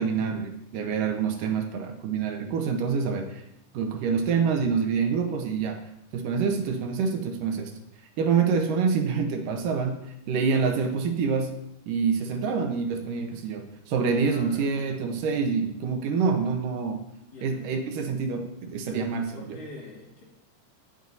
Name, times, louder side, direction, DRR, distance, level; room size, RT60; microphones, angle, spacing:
voice 1, 0.0-3.4 3.7-5.8 6.1-7.7 8.2-9.9 10.3-11.5 11.9-17.0 17.4-19.6, right 5 dB, 85° right, 4 dB, 2.6 m, -26 dB
voice 2, 14.2-15.1 17.3-17.7 18.8-20.2, left 2 dB, 50° left, -7 dB, 3.2 m, -45 dB
16.5 x 7.7 x 2.8 m, 0.80 s
omnidirectional pair, 3.8 m